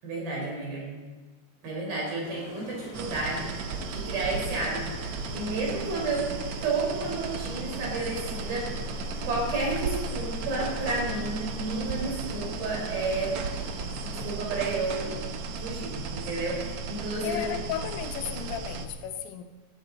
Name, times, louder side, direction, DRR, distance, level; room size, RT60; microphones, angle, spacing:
voice 1, 0.0-0.9 1.6-5.0 5.3-6.3 6.6-8.7 9.2-13.3 14.0-15.2 15.6-17.4, right 2 dB, 65° right, 6.4 m, -31 dB
sound 1, 2.2-14.2, left 3 dB, 35° left, 2.0 m, -45 dB
sound 2, 2.9-18.9, right 4 dB, 80° right, 1.6 m, -35 dB
voice 2, 17.2-19.4, left 10 dB, 90° left, 3.0 m, -34 dB
20.5 x 12.5 x 4.2 m
omnidirectional pair, 4.5 m